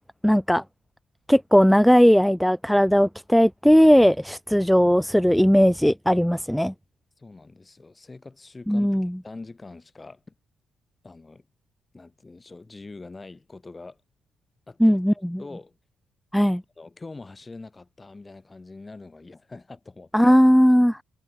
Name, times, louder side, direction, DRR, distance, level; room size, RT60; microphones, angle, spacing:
voice 1, 0.2-0.6 1.3-6.7 8.7-9.1 14.8-15.4 16.3-16.6 20.1-21.0, equal, ahead, 0.4 m, -18 dB
voice 2, 7.2-10.3 11.0-11.5 11.9-14.0 14.7-15.0 15.4-15.8 16.4-20.4, left 3 dB, 20° left, 4.3 m, -44 dB
cardioid pair, 90°, 0 cm